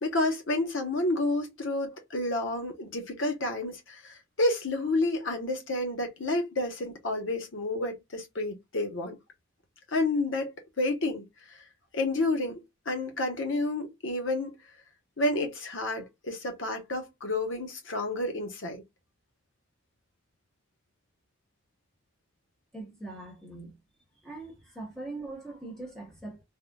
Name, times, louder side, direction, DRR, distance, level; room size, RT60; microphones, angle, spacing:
voice 1, 0.0-9.2 9.9-11.2 11.5-11.6 11.9-14.6 15.2-18.8, left 2 dB, 65° left, 0.9 m, -30 dB
voice 2, 22.7-23.7 24.2-26.4, right 2 dB, 5° left, 0.9 m, -41 dB
3.6 x 2.2 x 2.2 m
head